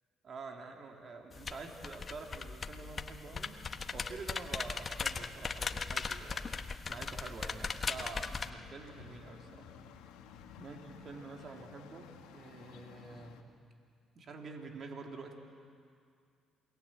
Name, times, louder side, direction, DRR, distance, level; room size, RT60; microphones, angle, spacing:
voice 1, 0.2-3.6 3.9-6.5 6.9-9.7 10.6-13.4 14.1-15.3, right 3 dB, 50° right, 2 dB, 3.3 m, -47 dB
sound 1, 1.3-8.5, left 5 dB, 40° left, 1.2 m, -39 dB
sound 2, 7.9-13.4, left 7 dB, 80° left, 1.7 m, -54 dB
28.0 x 20.5 x 7.7 m, 2.3 s
hypercardioid pair, 60°, 0 cm